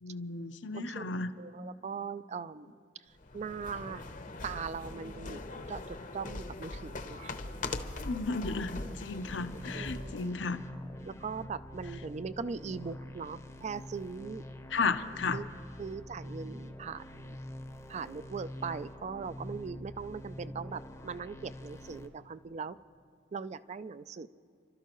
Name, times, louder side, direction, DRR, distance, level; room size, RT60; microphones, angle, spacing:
voice 1, 0.0-1.3 8.0-10.6 14.7-15.4, left 4 dB, 85° left, 9 dB, 0.8 m, -34 dB
voice 2, 0.7-1.1 1.4-2.8 3.3-4.0 4.4-7.4 9.7-10.3 11.1-14.4 15.3-15.5 15.8-17.4 17.9-22.8 23.3-24.3, right 5 dB, 40° right, 15 dB, 0.4 m, -40 dB
sound 1, 3.2-10.3, left 2 dB, 45° left, 0.8 m, -41 dB
sound 2, 9.2-22.1, left 1 dB, 15° left, 0.7 m, -46 dB
29.5 x 12.5 x 3.0 m, 2.5 s
head